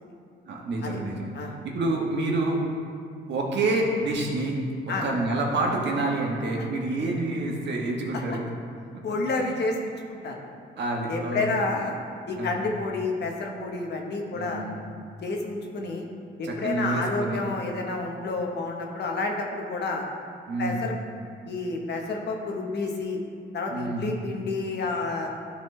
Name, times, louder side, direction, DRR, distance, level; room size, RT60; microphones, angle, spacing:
voice 1, 0.5-2.6 3.3-4.6 4.9-8.5 10.8-11.4 12.3-12.6 14.3-14.8 16.4-17.4 20.5-20.9 23.7-24.2, right 2 dB, 60° right, -1 dB, 1.4 m, -28 dB
voice 2, 9.0-10.5 11.1-12.0 12.3-14.7 15.2-16.1 16.4-20.1 20.6-20.9 21.5-23.2 23.5-25.3, left 3 dB, 60° left, 1 dB, 1.1 m, -30 dB
12.0 x 4.2 x 3.2 m, 2.4 s
cardioid pair, 90°, 20 cm